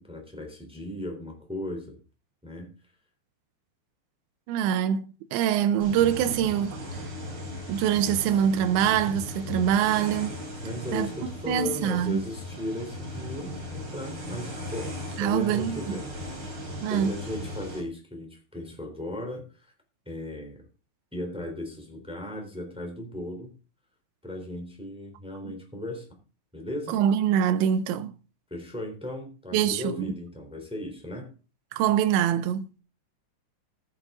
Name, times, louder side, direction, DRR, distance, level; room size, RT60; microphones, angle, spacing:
voice 1, 0.1-2.0 2.4-2.7 10.6-16.1 16.5-19.7 20.0-20.6 21.1-23.5 24.2-26.1 26.5-26.9 28.5-31.3, left 1 dB, ahead, 2.8 m, -36 dB
voice 2, 4.5-7.1 7.7-10.4 10.9-11.1 11.5-12.2 15.2-15.8 16.8-17.1 25.5-25.6 26.9-28.1 29.5-30.1 31.7-32.7, right 9 dB, 90° right, 3.1 m, -24 dB
sound 1, 5.8-17.8, left 1 dB, 25° right, 4.3 m, -37 dB
14.5 x 9.1 x 3.8 m
omnidirectional pair, 5.1 m